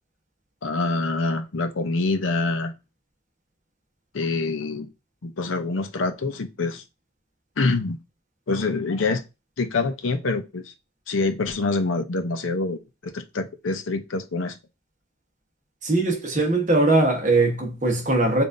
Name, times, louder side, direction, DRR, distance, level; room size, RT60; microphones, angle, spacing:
voice 1, 0.6-2.7 4.1-4.9 5.2-6.8 7.6-8.0 8.5-9.2 9.6-10.7 11.1-14.6, left 3 dB, 85° left, 0.7 m, -26 dB
voice 2, 15.8-18.4, right 2 dB, 40° right, 1.1 m, -20 dB
6.9 x 2.6 x 2.5 m
head